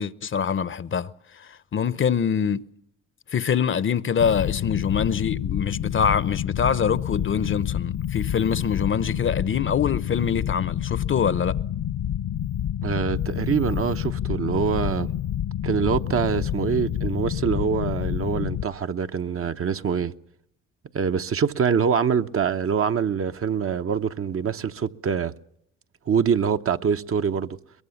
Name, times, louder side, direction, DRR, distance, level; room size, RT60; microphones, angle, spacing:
voice 1, 0.0-2.7 3.3-11.6, left 7 dB, 40° left, 0.8 m, -24 dB
sound 1, 4.2-18.6, left 11 dB, 65° left, 1.0 m, -28 dB
voice 2, 12.8-15.1 15.6-20.1 20.9-25.3 26.1-27.6, right 7 dB, 45° right, 0.9 m, -24 dB
22.5 x 22.0 x 7.1 m
cardioid pair, 80°, 32 cm